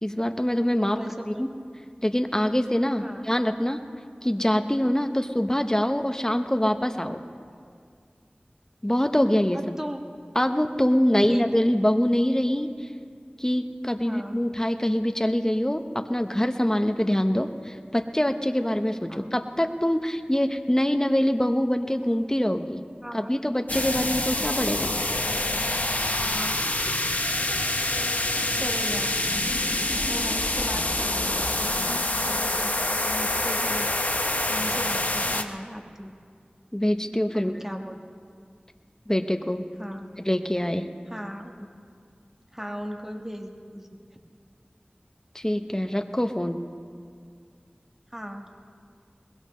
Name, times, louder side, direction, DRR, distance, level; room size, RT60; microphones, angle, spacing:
voice 1, 0.0-1.0 1.3-1.5 2.0-3.8 4.2-7.2 8.8-9.7 10.3-12.7 13.4-15.8 16.1-22.8 23.1-25.0 36.7-37.6 39.1-39.7 40.2-40.9 45.3-46.6, equal, 15° left, 6 dB, 0.9 m, -24 dB
voice 2, 0.9-1.5 3.0-3.3 4.9-5.0 9.5-10.1 11.2-11.6 14.0-14.4 19.1-19.3 23.0-23.5 26.2-26.7 28.6-29.2 30.1-31.5 32.2-33.9 34.5-36.1 37.3-38.0 39.8-40.1 41.1-41.5 42.5-44.0 48.1-48.5, equal, 10° right, 2 dB, 1.4 m, -37 dB
sound 1, 23.7-35.4, left 1 dB, 55° left, 0.9 m, -26 dB
22.5 x 20.5 x 3.2 m, 2.2 s
wide cardioid pair, 45°, 3 cm